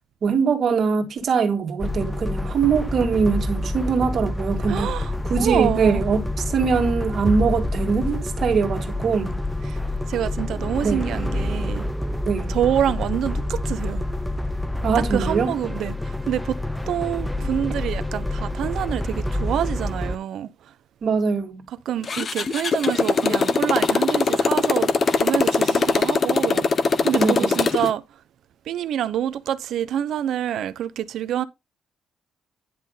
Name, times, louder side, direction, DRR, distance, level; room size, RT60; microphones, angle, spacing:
voice 1, 0.2-4.9 5.3-9.4 10.8-11.1 12.3-12.6 14.8-15.5 21.0-21.6 27.1-27.6, right 5 dB, 55° right, 2.1 m, -22 dB
sound 1, 1.8-20.2, left 1 dB, 5° left, 0.6 m, -27 dB
voice 2, 4.7-6.0 9.6-9.8 10.1-11.9 12.5-14.1 14.9-16.6 16.9-20.7 21.8-26.7 27.0-28.2 28.7-31.4, right 10 dB, 75° right, 0.7 m, -27 dB
Motorcycle, 22.0-27.9, left 4 dB, 45° left, 1.0 m, -21 dB
10.5 x 3.6 x 4.0 m
cardioid pair, 90°, 0 cm